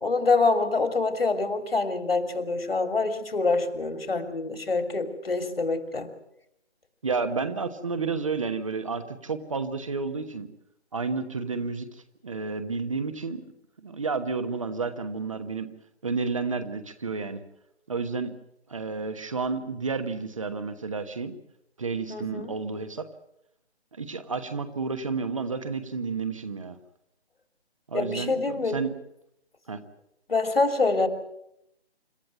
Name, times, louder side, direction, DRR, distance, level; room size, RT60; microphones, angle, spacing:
voice 1, 0.0-6.1 22.1-22.5 27.9-28.8 30.3-31.1, left 3 dB, 60° left, 7 dB, 3.1 m, -25 dB
voice 2, 7.0-10.5 10.9-13.4 13.8-15.7 16.0-17.4 17.9-18.3 18.7-21.4 21.8-23.1 23.9-26.8 27.9-28.9 29.7-29.8, right 4 dB, 30° right, 9 dB, 1.2 m, -31 dB
26.5 x 13.5 x 9.3 m, 0.80 s
figure-of-eight pair, 155°, 33 cm